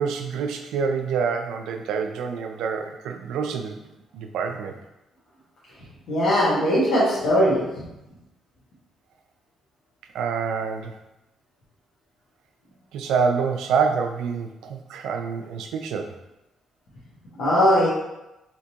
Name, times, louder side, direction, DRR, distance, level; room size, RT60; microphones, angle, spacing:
voice 1, 0.0-3.9 4.1-4.7 10.1-11.0 12.9-16.1, right 5 dB, 85° right, 4 dB, 0.4 m, -26 dB
voice 2, 6.1-7.6 17.4-17.9, equal, 80° left, -8 dB, 1.3 m, -19 dB
3.4 x 2.8 x 2.8 m, 0.94 s
cardioid pair, 90°, 0 cm